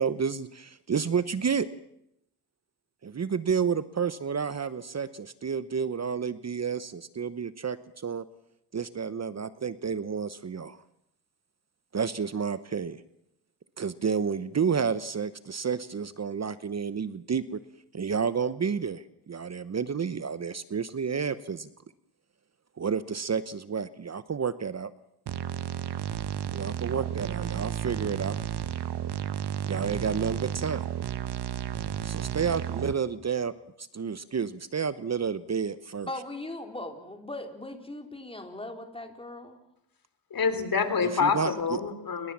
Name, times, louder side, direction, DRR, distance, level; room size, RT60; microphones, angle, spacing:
voice 1, 0.0-1.7 3.0-8.2 8.7-10.8 11.9-13.0 13.8-17.6 17.9-21.7 22.8-24.9 26.5-28.4 29.6-30.8 32.0-33.5 33.8-36.1 41.0-41.8, right 6 dB, 40° right, 14 dB, 1.0 m, -30 dB
sound 1, 25.3-32.9, right 10 dB, 70° right, 1.3 m, -32 dB
voice 2, 36.0-39.6, left 2 dB, 15° left, 4 dB, 4.2 m, -39 dB
voice 3, 40.3-42.3, left 5 dB, 55° left, 10 dB, 3.8 m, -27 dB
29.0 x 22.0 x 7.4 m, 0.79 s
cardioid pair, 95°, 41 cm